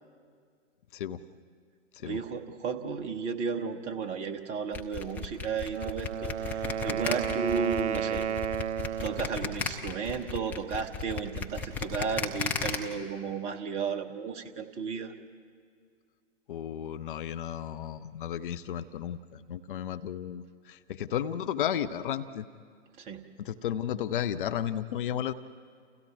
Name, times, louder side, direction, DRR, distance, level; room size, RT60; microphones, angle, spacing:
voice 1, 0.9-1.2 1.9-2.2 16.5-22.5 23.4-25.3, left 10 dB, 45° left, 11 dB, 0.7 m, -33 dB
voice 2, 2.0-8.3 9.0-15.1 23.0-23.2, right 5 dB, 20° right, 5 dB, 1.0 m, -34 dB
sound 1, 4.7-12.8, left 5 dB, 5° left, 0.5 m, -34 dB
Wind instrument woodwind instrument, 5.6-9.4, right 9 dB, 65° right, 0.5 m, -32 dB
29.5 x 29.0 x 3.5 m, 2.1 s
figure-of-eight pair, 125°, 38 cm